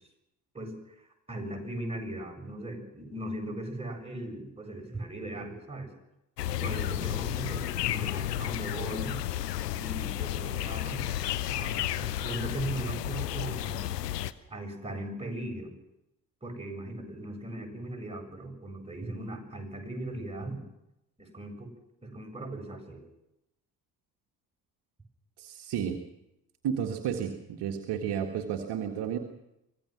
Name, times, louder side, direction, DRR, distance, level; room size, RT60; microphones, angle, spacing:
voice 1, 0.5-5.9 6.6-9.2 9.7-11.1 11.5-13.9 14.5-15.7 16.4-20.6 21.2-21.7 22.0-23.0, right 1 dB, 15° right, 0 dB, 7.3 m, -38 dB
sound 1, 6.4-14.3, left 12 dB, 85° left, 0.8 m, -32 dB
voice 2, 25.4-26.0 26.6-29.2, right 8 dB, 55° right, 2 dB, 2.0 m, -32 dB
25.0 x 17.5 x 6.2 m, 0.88 s
figure-of-eight pair, 50°, 47 cm